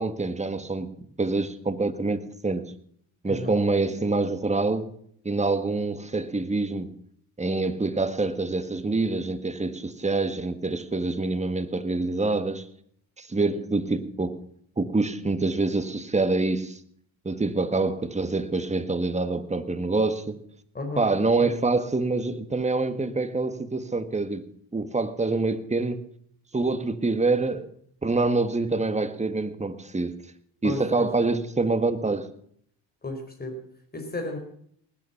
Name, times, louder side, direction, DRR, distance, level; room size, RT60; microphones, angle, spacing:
voice 1, 0.0-2.7 3.2-4.9 5.3-6.9 7.4-12.7 13.2-14.4 14.8-16.8 17.3-20.4 21.0-24.5 24.7-26.0 26.5-27.7 28.0-30.2 30.6-32.3, right 3 dB, 15° right, 1.6 m, -26 dB
voice 2, 30.6-31.1 33.0-33.6 33.9-34.4, left 2 dB, 20° left, 4.6 m, -33 dB
19.5 x 10.0 x 5.8 m
supercardioid pair, 80°, 42 cm